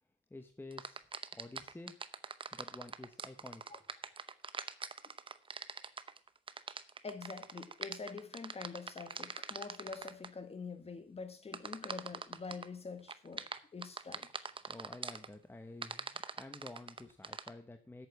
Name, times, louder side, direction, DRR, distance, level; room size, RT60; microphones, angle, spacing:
voice 1, 0.3-1.0 1.3-2.0 2.5-3.6 14.7-18.1, left 2 dB, 10° left, 1.1 m, -50 dB
sound 1, 0.7-10.3 11.5-12.7 13.1-15.3 15.8-17.5, right 5 dB, 25° right, 0.8 m, -42 dB
voice 2, 7.0-14.3, left 4 dB, 30° left, 1.7 m, -46 dB
8.5 x 6.6 x 8.0 m
cardioid pair, 90°, 20 cm